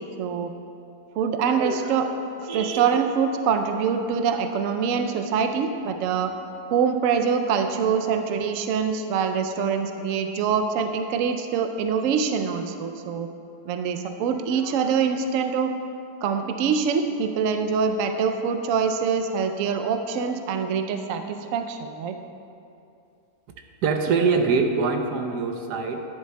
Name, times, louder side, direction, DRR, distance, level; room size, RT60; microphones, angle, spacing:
voice 1, 0.2-0.5 1.2-2.1 2.5-6.3 6.7-13.3 13.7-15.7 16.2-22.1, right 6 dB, 70° right, 7 dB, 0.8 m, -24 dB
voice 2, 1.4-2.0 2.4-3.0 3.9-4.4 23.6-26.1, right 4 dB, 90° right, 5 dB, 1.3 m, -25 dB
11.0 x 10.5 x 2.2 m, 2.6 s
omnidirectional pair, 1.7 m